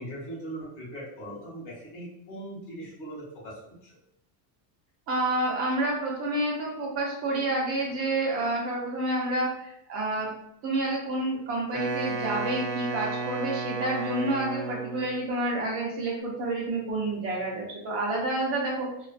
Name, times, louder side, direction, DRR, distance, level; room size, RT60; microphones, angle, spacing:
voice 1, 0.0-4.0, right 1 dB, 40° left, -6 dB, 1.0 m, -40 dB
voice 2, 5.1-10.3 10.6-18.9, right 2 dB, 30° right, -3 dB, 0.6 m, -29 dB
Wind instrument woodwind instrument, 11.7-15.2, right 3 dB, 70° right, 0.8 m, -32 dB
2.4 x 2.3 x 2.4 m, 0.76 s
cardioid pair, 180°, 45 cm